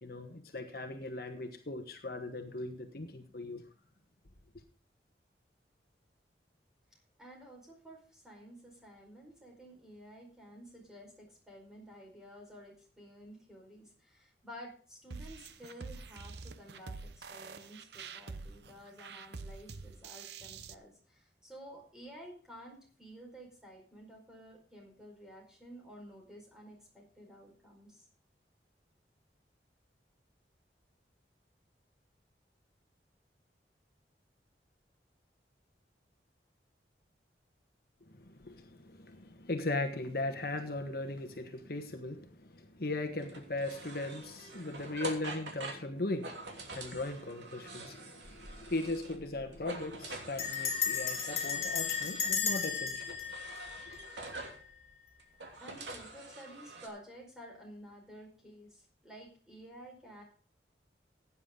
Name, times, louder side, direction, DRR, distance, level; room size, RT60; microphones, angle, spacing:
voice 1, 0.0-3.6 38.1-53.2, left 2 dB, 55° left, 1.2 m, -38 dB
voice 2, 7.2-28.1 55.6-60.2, equal, 5° right, 4.8 m, -52 dB
sound 1, 15.1-20.7, right 4 dB, 70° right, 0.7 m, -46 dB
sound 2, 43.2-49.3 49.5-52.4 53.0-54.6 55.2-56.9, right 2 dB, 85° right, 2.9 m, -46 dB
Bell, 48.3-48.6 48.9-49.0 49.2-49.6 50.4-54.5, left 6 dB, 35° left, 2.9 m, -35 dB
15.5 x 9.6 x 3.8 m
head